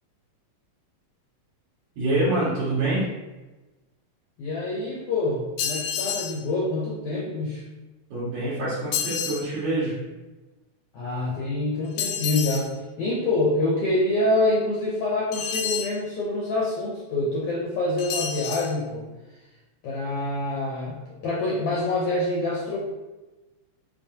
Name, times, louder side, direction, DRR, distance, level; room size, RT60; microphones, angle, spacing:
voice 1, 2.0-3.0 8.1-9.9, right 2 dB, 70° right, -11 dB, 2.7 m, -25 dB
voice 2, 4.4-7.6 10.9-19.0 19.8-21.0 21.2-22.8, left 2 dB, 70° left, -4 dB, 1.5 m, -26 dB
sound 1, 5.6-6.4 8.9-9.5 12.0-12.7 15.3-16.0 18.0-18.7, left 8 dB, 90° left, 2.0 m, -29 dB
6.9 x 2.7 x 2.8 m, 1.1 s
omnidirectional pair, 3.4 m